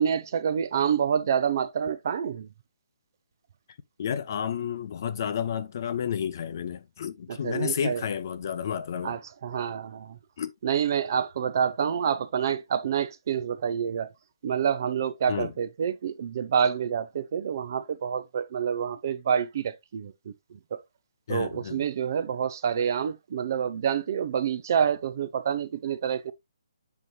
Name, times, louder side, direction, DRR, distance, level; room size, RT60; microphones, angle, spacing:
voice 1, 0.0-2.5 7.3-8.0 9.0-10.2 10.6-14.1 14.4-20.3 20.7-20.8 21.3-26.3, right 8 dB, 40° right, 0.7 m, -27 dB
voice 2, 4.0-9.2 10.4-10.5 15.3-15.5 21.3-21.8, left 8 dB, 40° left, 0.7 m, -31 dB
8.0 x 5.6 x 2.4 m
hypercardioid pair, 165°, 3 cm